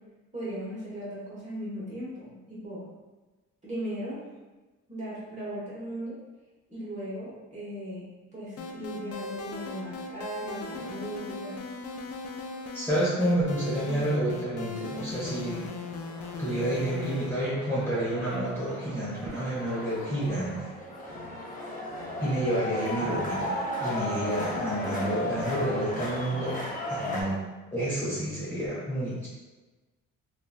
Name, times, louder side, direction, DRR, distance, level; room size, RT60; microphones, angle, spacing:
voice 1, 0.3-2.8 3.6-4.2 4.9-6.2 6.7-11.6, equal, 25° right, -8 dB, 1.3 m, -37 dB
sound 1, 8.6-17.3, left 4 dB, 55° left, 0.4 m, -38 dB
sound 2, 12.6-12.7 13.4-27.2, left 1 dB, 25° left, 0.7 m, -36 dB
voice 2, 12.7-15.7 16.4-20.5 22.2-26.6 26.9-27.4 27.7-29.3, right 1 dB, 10° left, -10 dB, 1.0 m, -29 dB
2.9 x 2.6 x 2.4 m, 1.2 s
cardioid pair, 90°, 30 cm